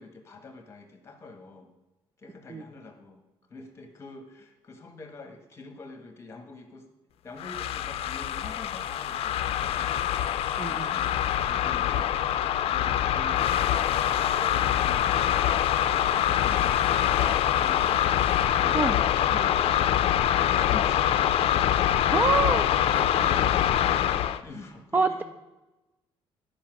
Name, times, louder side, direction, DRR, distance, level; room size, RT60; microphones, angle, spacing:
voice 1, 0.0-1.7 2.2-3.2 3.5-6.9 7.2-9.9 10.7-11.1 11.4-12.1 12.6-15.1 15.7-18.0 18.4-21.4 23.1-23.6 24.4-25.2, left 3 dB, 25° left, 5 dB, 1.4 m, -44 dB
sound 1, 7.4-24.4, left 11 dB, 65° left, 0.5 m, -24 dB
voice 2, 10.6-10.9 18.7-19.0 22.1-22.7 22.9-23.3 24.9-25.1, right 4 dB, 15° right, 9 dB, 0.3 m, -26 dB
10.0 x 5.3 x 6.3 m, 1.0 s
cardioid pair, 145°, 10 cm